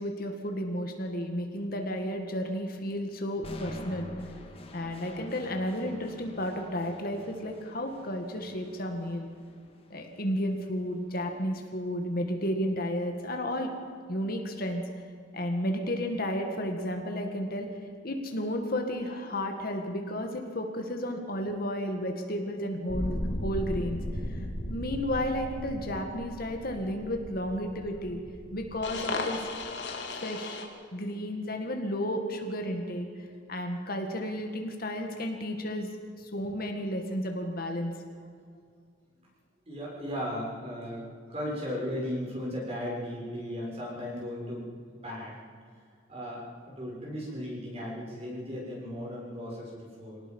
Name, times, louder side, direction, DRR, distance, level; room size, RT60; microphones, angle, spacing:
voice 1, 0.0-4.3 4.7-9.3 9.9-13.7 14.1-14.8 15.3-17.7 18.0-24.0 24.3-24.4 24.7-28.2 28.5-29.5 30.2-30.6 30.9-33.1 33.5-35.9 36.2-37.9, equal, 50° left, 4 dB, 2.1 m, -32 dB
sound 1, 3.4-11.4, left 1 dB, 30° left, 2.2 m, -46 dB
sound 2, 22.9-30.7, left 1 dB, 70° left, 2.5 m, -36 dB
voice 2, 39.7-45.3 46.1-50.2, equal, 35° right, -3 dB, 6.6 m, -36 dB
25.5 x 18.5 x 5.6 m, 2.1 s
head